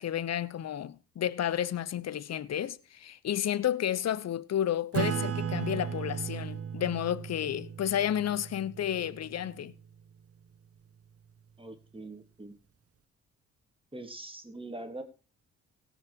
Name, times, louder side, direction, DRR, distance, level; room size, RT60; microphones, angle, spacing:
voice 1, 0.0-9.7, left 10 dB, 55° left, 0.9 m, -31 dB
Acoustic guitar / Strum, 4.9-9.9, right 7 dB, 50° right, 0.9 m, -36 dB
voice 2, 11.6-12.6 13.9-15.0, right 2 dB, 15° right, 3.3 m, -43 dB
17.0 x 6.4 x 6.3 m
supercardioid pair, 50°, 31 cm